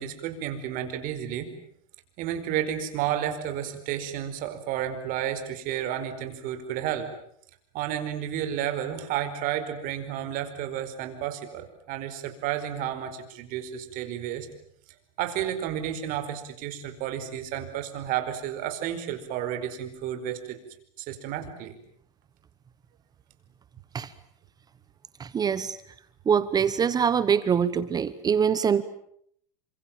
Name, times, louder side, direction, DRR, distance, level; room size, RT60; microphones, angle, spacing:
voice 1, 0.0-1.5 2.2-7.1 7.7-14.5 15.2-20.6 21.0-21.7, right 10 dB, 45° right, 8 dB, 4.8 m, -31 dB
voice 2, 25.2-25.8 26.3-28.8, right 7 dB, 20° right, 15 dB, 1.1 m, -24 dB
29.5 x 26.0 x 7.4 m, 0.68 s
supercardioid pair, 145°, 19 cm